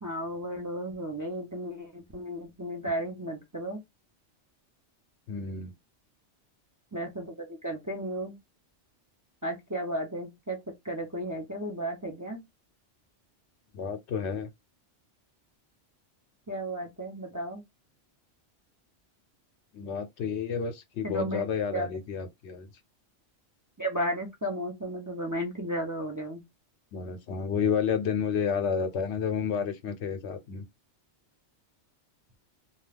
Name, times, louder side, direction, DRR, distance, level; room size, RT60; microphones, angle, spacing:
voice 1, 0.0-3.8 6.9-8.4 9.4-10.6 10.8-12.4 16.5-17.6 21.0-21.4 21.7-21.9 23.8-26.4, right 1 dB, 20° right, 0.5 m, -34 dB
voice 2, 5.3-5.7 13.7-14.5 19.7-22.7 26.9-30.6, left 6 dB, 75° left, 0.9 m, -30 dB
2.3 x 2.3 x 3.3 m
omnidirectional pair, 1.2 m